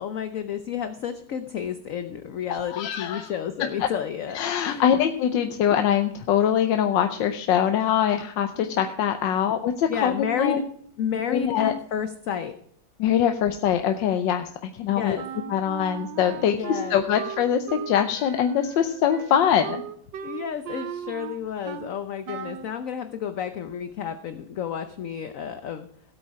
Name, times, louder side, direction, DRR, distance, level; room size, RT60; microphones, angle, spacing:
voice 1, 0.0-5.0 9.9-10.6 11.0-12.5 14.9-15.2 16.4-17.0 20.2-25.9, left 8 dB, 60° left, 9 dB, 1.0 m, -31 dB
voice 2, 2.6-3.3 3.8-3.9 4.3-10.6 11.3-11.7 13.0-15.2 15.5-19.8, left 9 dB, 85° left, 7 dB, 1.5 m, -23 dB
Wind instrument woodwind instrument, 15.2-21.9 22.3-22.7, right 9 dB, 80° right, 1.5 m, -37 dB
16.0 x 8.6 x 4.8 m, 0.65 s
omnidirectional pair, 1.9 m